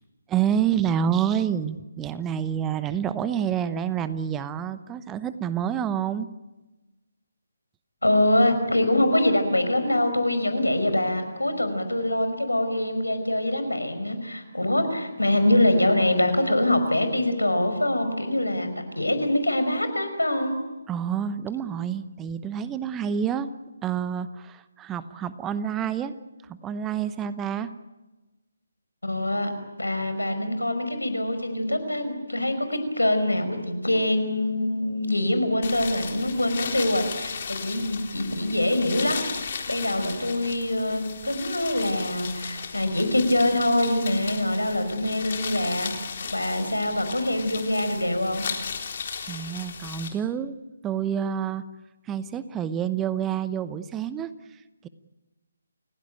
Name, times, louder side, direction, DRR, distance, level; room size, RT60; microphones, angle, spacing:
voice 1, 0.3-6.3 20.9-23.5 23.8-26.1 26.5-27.7 49.3-51.6 52.1-54.9, right 8 dB, 10° right, 13 dB, 0.9 m, -28 dB
voice 2, 8.0-18.7 19.0-20.5 29.0-29.5 29.8-48.5, left 1 dB, 90° left, 9 dB, 5.4 m, -24 dB
sound 1, 35.6-50.1, left 6 dB, 45° left, 3.8 m, -36 dB
29.5 x 17.0 x 9.2 m, 1.1 s
figure-of-eight pair, 145°, 0 cm